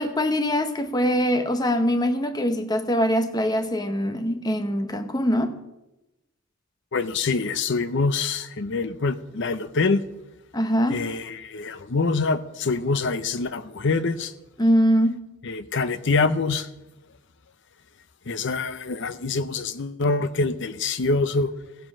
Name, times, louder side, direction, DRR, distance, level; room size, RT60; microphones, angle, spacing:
voice 1, 0.0-5.6 10.5-11.0 14.6-15.3, equal, 20° left, 0.8 m, -23 dB
voice 2, 6.9-10.0 10.9-14.3 15.4-16.7 18.3-21.5, left 3 dB, 55° left, 0.6 m, -25 dB
15.0 x 7.6 x 6.1 m
head